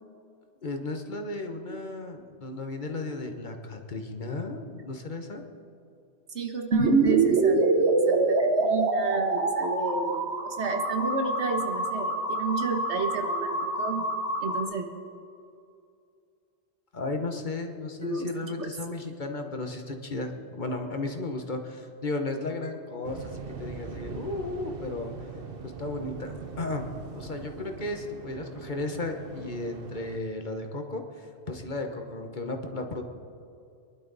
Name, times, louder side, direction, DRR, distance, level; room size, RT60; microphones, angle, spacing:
voice 1, 0.6-5.4 16.9-25.1 25.6-33.0, left 2 dB, 45° left, 4 dB, 1.3 m, -34 dB
voice 2, 6.3-14.1 14.4-14.9 18.0-18.3 18.6-18.7, right 4 dB, 90° right, 4 dB, 1.6 m, -31 dB
sound 1, 6.7-14.6, right 3 dB, 75° right, 1.4 m, -25 dB
Waves surf, 23.0-30.2, right 5 dB, 60° right, 1.1 m, -42 dB
22.5 x 11.5 x 4.1 m, 2.5 s
omnidirectional pair, 1.1 m